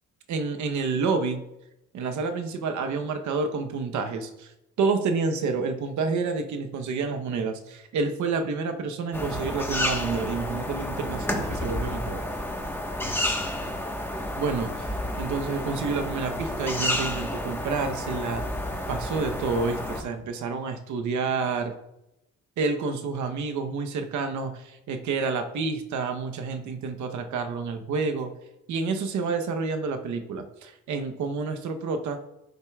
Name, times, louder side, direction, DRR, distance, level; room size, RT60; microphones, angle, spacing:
voice 1, 0.3-1.4 1.9-4.5 4.8-12.2 14.4-18.4 18.9-21.7 22.6-28.3 28.7-32.2, right 4 dB, 75° right, 6 dB, 0.9 m, -29 dB
sound 1, 9.1-20.0, left 1 dB, 5° left, 1.2 m, -30 dB
11.5 x 6.6 x 2.3 m, 0.90 s
cardioid pair, 90°, 30 cm